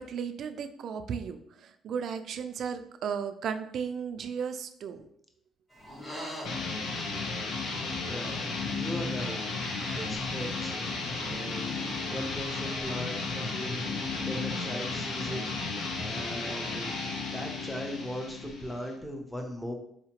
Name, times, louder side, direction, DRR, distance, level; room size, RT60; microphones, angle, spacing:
voice 1, 0.0-5.0, right 7 dB, 60° right, 8 dB, 0.3 m, -35 dB
sound 1, 5.7-12.0, equal, 25° left, 1.5 m, -47 dB
sound 2, 6.4-19.0, left 3 dB, 65° left, 0.7 m, -34 dB
voice 2, 8.1-9.4 9.9-10.8 11.2-11.8 12.1-13.8 14.2-15.4 16.0-16.9 17.2-19.7, equal, 5° left, 2 dB, 0.7 m, -38 dB
4.2 x 2.8 x 2.8 m, 0.71 s
cardioid pair, 115°, 0 cm